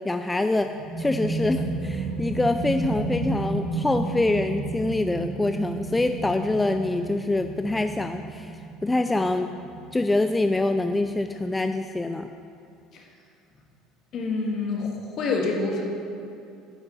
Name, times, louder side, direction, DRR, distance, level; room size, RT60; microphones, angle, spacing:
voice 1, 0.0-0.7 1.0-8.5 8.8-9.5 9.9-12.3, left 2 dB, 15° left, 7 dB, 0.3 m, -25 dB
sound 1, 0.6-11.9, right 2 dB, 55° right, 1.7 m, -32 dB
voice 2, 14.1-15.8, left 3 dB, 55° left, 0 dB, 1.7 m, -27 dB
9.0 x 5.8 x 5.4 m, 2.6 s
hypercardioid pair, 75°, 0 cm